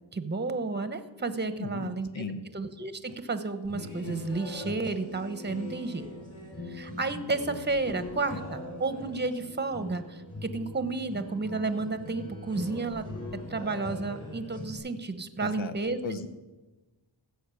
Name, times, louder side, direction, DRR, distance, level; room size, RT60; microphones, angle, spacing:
voice 1, 0.1-2.2 2.5-6.1 6.7-13.1 13.5-16.0, right 3 dB, 20° right, 11 dB, 1.0 m, -32 dB
voice 2, 1.6-2.4 15.4-15.7 16.0-16.3, left 3 dB, 65° left, 10 dB, 1.2 m, -36 dB
sound 1, 3.6-14.8, left 1 dB, 40° left, 4.4 m, -41 dB
15.5 x 6.4 x 8.3 m, 1.2 s
wide cardioid pair, 70°, 49 cm